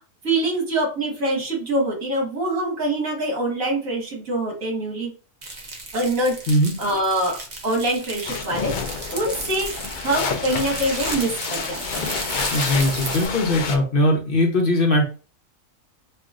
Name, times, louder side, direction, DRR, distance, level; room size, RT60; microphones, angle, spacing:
voice 1, 0.2-5.1 5.9-6.4 6.8-7.4 7.6-8.9 9.1-9.7 10.0-12.1, right 1 dB, 75° right, -1 dB, 2.0 m, -24 dB
sound 1, 5.4-13.3, right 2 dB, 40° right, 0.7 m, -34 dB
sound 2, 8.2-13.8, left 5 dB, 75° left, 0.4 m, -29 dB
voice 2, 12.5-15.0, left 1 dB, 50° left, 0 dB, 0.8 m, -20 dB
5.5 x 2.4 x 2.4 m, 0.35 s
omnidirectional pair, 1.4 m